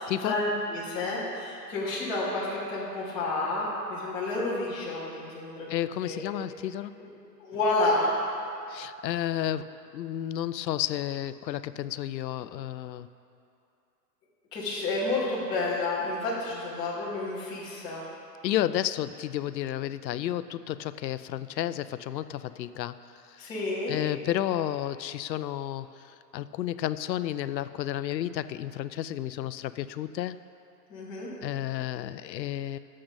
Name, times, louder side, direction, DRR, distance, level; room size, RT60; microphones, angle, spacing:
voice 1, 0.0-5.8 6.0-6.3 7.0-7.1 7.4-8.1 14.5-18.0 23.4-24.0 30.9-31.3, left 2 dB, 10° left, -8 dB, 1.1 m, -30 dB
voice 2, 5.7-6.9 8.7-13.1 18.4-23.0 23.9-26.0 26.3-30.4 31.4-32.8, left 12 dB, 85° left, 14 dB, 0.6 m, -31 dB
10.5 x 7.6 x 5.2 m, 2.6 s
hypercardioid pair, 180°, 49 cm